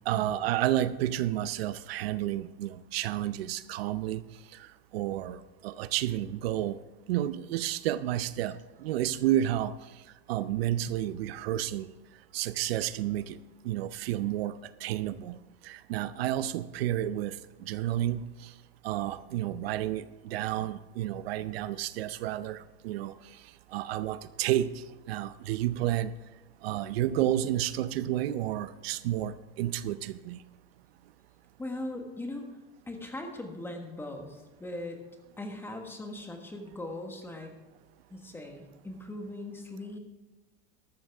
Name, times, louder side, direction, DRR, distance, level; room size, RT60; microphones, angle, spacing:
voice 1, 0.1-4.2 4.5-6.8 7.1-9.7 10.3-11.9 12.3-13.4 13.6-15.4 15.6-18.5 18.8-23.1 23.7-26.1 26.6-30.4, right 12 dB, 90° right, 0.7 m, -31 dB
voice 2, 31.6-32.4 32.9-35.0 35.4-37.5 38.1-40.0, left 1 dB, 10° left, 1.4 m, -39 dB
13.0 x 12.5 x 3.5 m
supercardioid pair, 150°, 29 cm